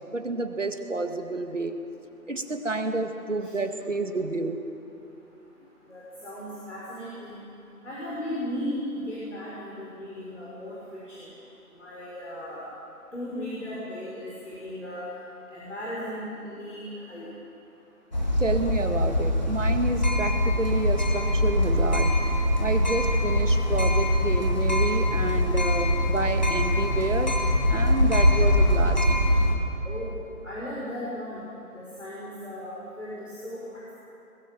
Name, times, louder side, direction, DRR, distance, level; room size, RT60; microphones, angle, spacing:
voice 1, 0.1-1.8 2.3-4.6 18.4-22.1 22.6-27.4 27.7-29.1, right 2 dB, 50° right, 6 dB, 1.9 m, -29 dB
voice 2, 5.9-7.4 7.8-10.8 11.1-11.3 11.8-12.6 13.1-15.1 15.5-17.3 29.8-30.1 30.4-31.4 31.7-33.9, left 1 dB, 50° left, -7 dB, 5.8 m, -36 dB
sound 1, 18.1-29.6, left 1 dB, 30° left, 1.8 m, -23 dB
21.0 x 21.0 x 7.2 m, 2.8 s
figure-of-eight pair, 175°, 46 cm